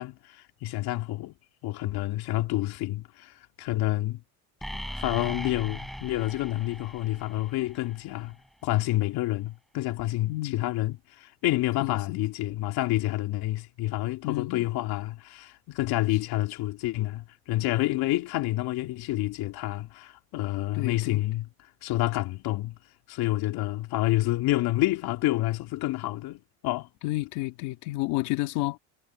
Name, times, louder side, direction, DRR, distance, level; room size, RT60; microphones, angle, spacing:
voice 1, 0.0-1.3 1.6-4.2 4.7-8.4 8.6-21.5 21.8-22.8 23.1-26.9, left 16 dB, 65° left, 2.9 m, -28 dB
sound 1, 4.6-8.5, equal, ahead, 7.2 m, -39 dB
voice 2, 11.8-12.2 14.2-14.6 20.7-21.2 27.0-28.8, left 20 dB, 80° left, 2.6 m, -30 dB
cardioid pair, 140°, 40 cm